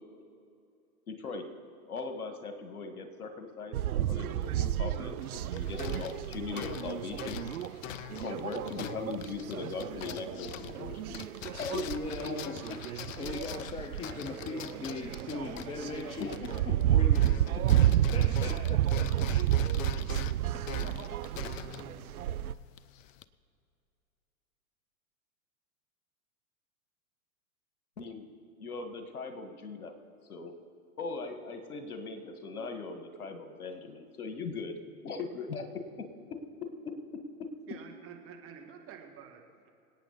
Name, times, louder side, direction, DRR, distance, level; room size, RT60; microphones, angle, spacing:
voice 1, 1.1-1.4 1.9-7.4 8.2-11.2 11.6-11.8 12.2-12.4 16.0-16.3 16.9-17.6 28.0-28.2 28.6-29.9 30.3-30.5 31.0-34.8 35.0-35.7, left 4 dB, 80° left, 7 dB, 1.9 m, -39 dB
sound 1, 3.7-22.5, right 12 dB, 75° right, 0.6 m, -31 dB
sound 2, 5.2-16.9 17.1-23.2, left 11 dB, 60° left, 0.7 m, -44 dB
voice 2, 11.5-17.4 17.7-19.5 20.3-21.3 21.8-21.9, left 4 dB, 15° left, 7 dB, 0.5 m, -41 dB
voice 3, 37.7-39.7, right 7 dB, 30° right, 3 dB, 2.0 m, -49 dB
26.0 x 9.0 x 4.1 m, 2.5 s
hypercardioid pair, 105°, 44 cm